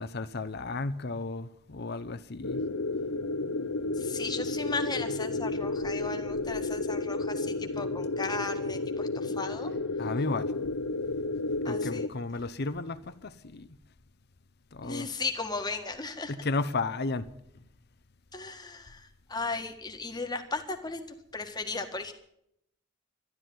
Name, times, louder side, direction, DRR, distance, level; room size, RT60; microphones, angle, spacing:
voice 1, 0.0-2.6 10.0-10.5 11.6-13.7 14.7-15.1 16.3-17.3, left 3 dB, 50° left, 0.8 m, -33 dB
sound 1, 2.4-12.1, left 2 dB, 90° left, 0.8 m, -32 dB
voice 2, 3.9-9.7 11.6-12.1 14.8-16.3 18.3-21.0 21.3-22.1, left 3 dB, 20° left, 1.6 m, -36 dB
13.0 x 12.0 x 9.3 m
head